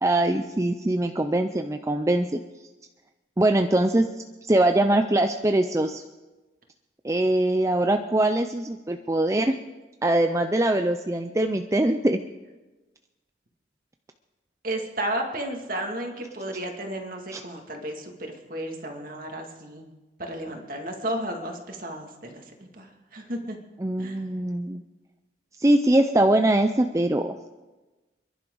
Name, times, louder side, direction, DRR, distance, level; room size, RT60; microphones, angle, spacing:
voice 1, 0.0-2.4 3.4-4.0 4.5-6.0 7.0-9.5 10.0-12.2 17.3-17.4 23.8-24.8 25.6-27.4, right 1 dB, 15° right, 6 dB, 0.5 m, -22 dB
voice 2, 14.6-19.9 20.2-22.4 22.8-23.6 24.0-24.2, right 1 dB, 50° right, 2 dB, 2.2 m, -33 dB
29.0 x 11.0 x 3.9 m, 1.2 s
head